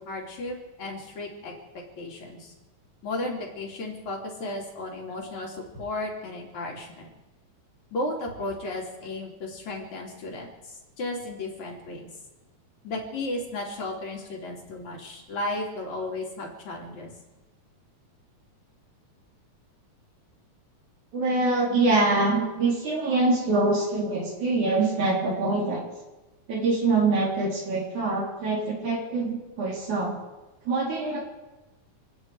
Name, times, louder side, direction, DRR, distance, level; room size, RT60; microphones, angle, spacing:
voice 1, 0.0-1.5 2.0-2.5 3.0-7.1 7.9-12.1 12.8-17.1, left 2 dB, 70° left, -1 dB, 4.4 m, -34 dB
voice 2, 21.1-25.9 26.5-30.2 30.7-31.2, right 3 dB, 75° right, -2 dB, 5.2 m, -24 dB
29.0 x 9.8 x 4.8 m, 1.1 s
omnidirectional pair, 3.4 m